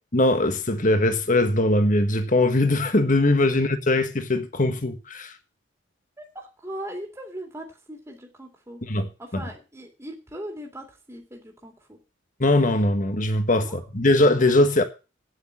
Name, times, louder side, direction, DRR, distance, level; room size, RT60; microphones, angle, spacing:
voice 1, 0.1-5.3 8.8-9.1 12.4-14.8, left 2 dB, 40° left, 1.4 m, -21 dB
voice 2, 6.2-8.8 9.2-12.0 13.6-13.9, right 1 dB, 15° right, 2.3 m, -39 dB
9.3 x 8.2 x 7.4 m
head